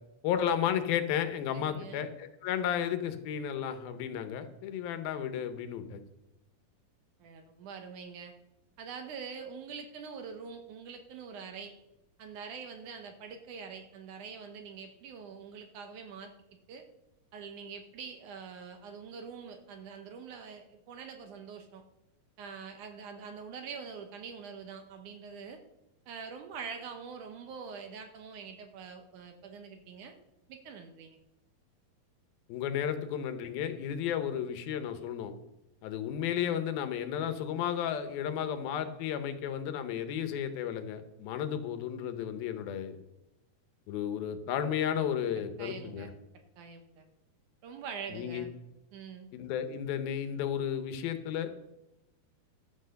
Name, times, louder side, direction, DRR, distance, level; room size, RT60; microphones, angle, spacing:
voice 1, 0.2-6.0 32.5-35.3 35.8-43.0 43.9-46.1 48.1-48.5 49.3-51.6, left 9 dB, 85° left, 9 dB, 2.8 m, -33 dB
voice 2, 1.5-2.1 7.2-8.3 8.8-11.7 12.2-16.3 16.7-16.9 17.3-21.8 22.4-25.6 26.1-30.1 30.5-31.2 45.6-46.1 46.6-47.1 47.6-48.5 48.9-49.3, right 6 dB, 70° right, 6 dB, 2.2 m, -44 dB
12.0 x 8.0 x 6.5 m, 0.91 s
omnidirectional pair, 4.2 m